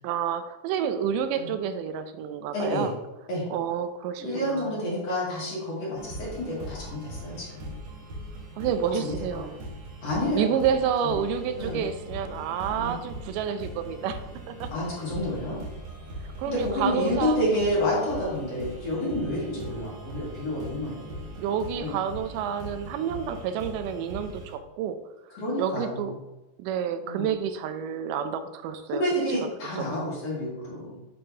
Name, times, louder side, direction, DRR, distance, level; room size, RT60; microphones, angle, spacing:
voice 1, 0.0-2.9 3.5-4.8 8.6-9.5 10.3-14.7 16.2-17.7 21.4-25.0 25.6-26.1 26.6-29.0, right 8 dB, 85° right, 9 dB, 2.1 m, -29 dB
voice 2, 2.5-2.9 3.3-3.4 4.2-7.7 8.9-9.6 10.0-10.5 11.6-11.8 12.7-12.9 14.7-15.6 16.5-21.0 21.8-22.0 25.3-26.1 27.0-27.3 29.0-31.1, left 1 dB, 50° left, -6 dB, 3.0 m, -29 dB
sound 1, 5.9-24.5, right 1 dB, 60° right, 2.5 m, -40 dB
7.6 x 5.7 x 2.8 m, 1.0 s
omnidirectional pair, 3.8 m